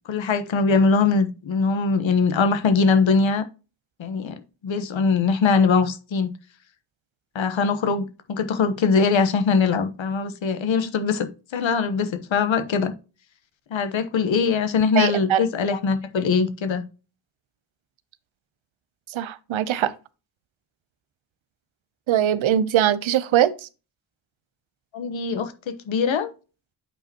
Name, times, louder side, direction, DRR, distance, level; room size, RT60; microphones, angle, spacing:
voice 1, 0.1-3.4 4.0-6.3 7.3-12.9 13.7-16.8 24.9-26.3, left 5 dB, 75° left, 1.1 m, -22 dB
voice 2, 15.0-15.4 19.1-19.9 22.1-23.5, right 11 dB, 85° right, 0.7 m, -21 dB
8.5 x 5.1 x 2.8 m
cardioid pair, 60°, 46 cm